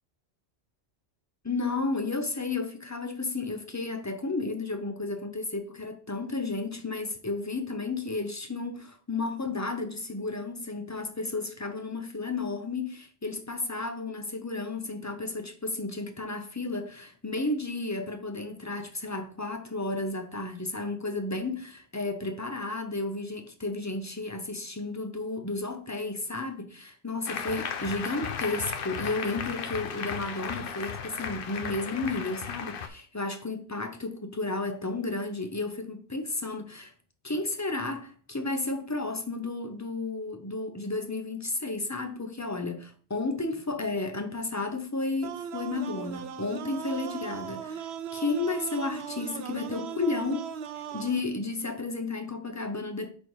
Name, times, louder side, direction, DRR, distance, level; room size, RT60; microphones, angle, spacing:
voice 1, 1.4-36.9 37.2-53.1, left 3 dB, 20° left, 0.6 m, -33 dB
Applause, 27.3-32.9, left 6 dB, 60° left, 0.8 m, -35 dB
sound 1, 45.2-51.2, right 8 dB, 75° right, 0.8 m, -38 dB
5.4 x 4.2 x 4.7 m
omnidirectional pair, 1.1 m